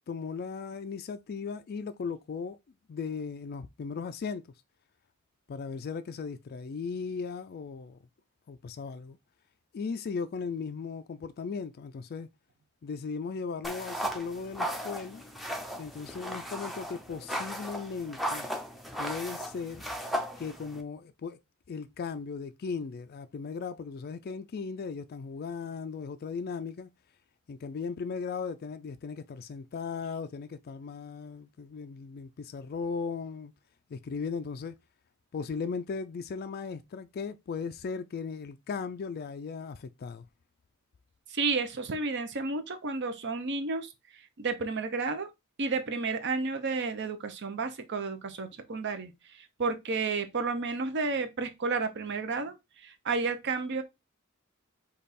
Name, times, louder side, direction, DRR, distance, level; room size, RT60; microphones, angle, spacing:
voice 1, 0.1-2.6 2.9-4.4 5.5-8.0 8.5-9.2 9.7-12.3 12.8-15.2 15.8-18.5 19.0-19.8 20.4-21.4 21.7-26.9 27.5-33.5 33.9-34.8 35.3-40.3, left 5 dB, 45° left, 0.3 m, -37 dB
sound 1, 13.6-20.8, equal, ahead, 0.6 m, -36 dB
voice 2, 41.3-43.9 44.4-45.3 45.6-53.8, right 4 dB, 55° right, 0.8 m, -32 dB
5.2 x 2.4 x 4.1 m
head